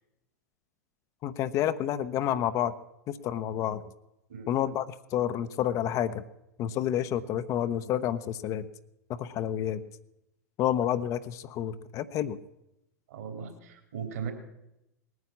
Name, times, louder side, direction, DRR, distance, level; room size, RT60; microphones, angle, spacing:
voice 1, 1.2-2.8 3.1-3.8 4.5-6.2 6.6-8.7 9.1-9.8 10.6-12.4, left 10 dB, 35° left, 11 dB, 0.8 m, -29 dB
voice 2, 13.1-14.3, right 6 dB, 60° right, 5 dB, 3.3 m, -38 dB
19.5 x 9.6 x 7.3 m, 0.87 s
figure-of-eight pair, 90°, 9 cm